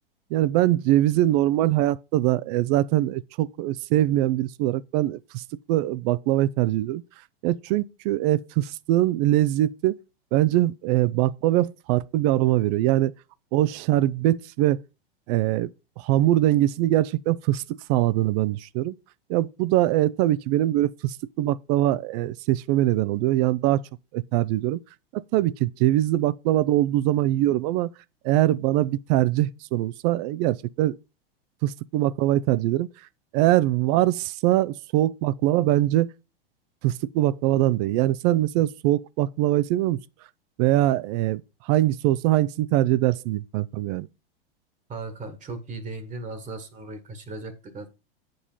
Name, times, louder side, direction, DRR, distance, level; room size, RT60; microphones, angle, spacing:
voice 1, 0.3-7.0 7.4-10.0 10.3-13.1 13.5-14.8 15.3-15.7 16.0-18.9 19.3-23.8 24.1-24.8 25.1-27.9 28.2-31.0 31.6-32.9 33.3-36.1 36.8-40.0 40.6-44.1, right 14 dB, 45° right, 0.5 m, -22 dB
voice 2, 44.9-48.0, right 3 dB, 25° right, 1.4 m, -37 dB
8.3 x 5.3 x 5.6 m
hypercardioid pair, 115°, 30 cm